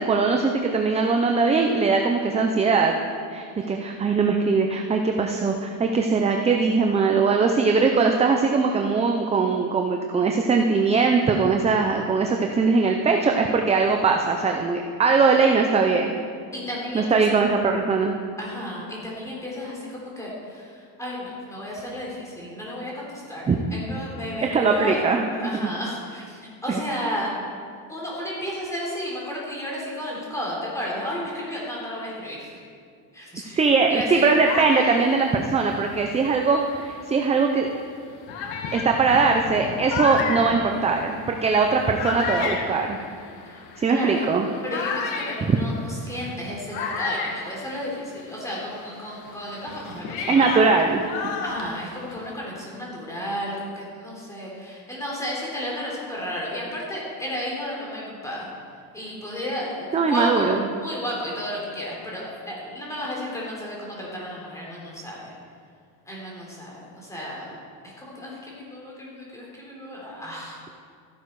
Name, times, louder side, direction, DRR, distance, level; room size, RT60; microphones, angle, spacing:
voice 1, 0.0-2.9 3.3-16.2 16.9-18.1 23.5-23.6 24.4-25.3 26.7-26.8 33.6-37.7 38.7-43.0 43.8-44.5 45.4-45.5 50.3-51.0 59.9-60.6, right 4 dB, 15° right, 3 dB, 0.5 m, -21 dB
voice 2, 3.6-4.0 16.5-17.2 18.4-25.0 25.3-27.3 27.9-32.5 33.1-34.3 43.4-43.6 43.9-44.3 44.6-50.7 51.4-58.5 58.9-65.3 66.1-67.5 68.0-70.6, equal, 5° left, -4 dB, 3.8 m, -33 dB
sound 1, 34.0-37.0 37.7-37.8 38.3-48.3 48.6-52.3, left 4 dB, 80° left, 1.8 m, -32 dB
14.0 x 11.5 x 4.7 m, 2.2 s
cardioid pair, 150°, 41 cm